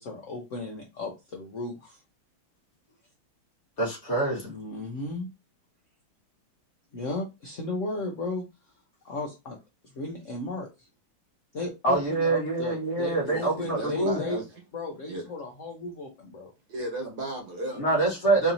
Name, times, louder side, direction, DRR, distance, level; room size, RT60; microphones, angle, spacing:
voice 1, 0.0-2.0 4.4-5.3 6.9-8.4 9.0-9.6 9.9-10.9 11.5-14.4 14.7-16.5, left 2 dB, 75° left, 0.7 m, -35 dB
voice 2, 3.8-4.6 11.8-14.2 17.7-18.5, right 2 dB, 35° left, 1.6 m, -25 dB
voice 3, 13.2-14.4 15.1-15.2 16.7-17.8, right 1 dB, 55° right, 1.4 m, -35 dB
4.1 x 2.7 x 2.7 m
omnidirectional pair, 2.3 m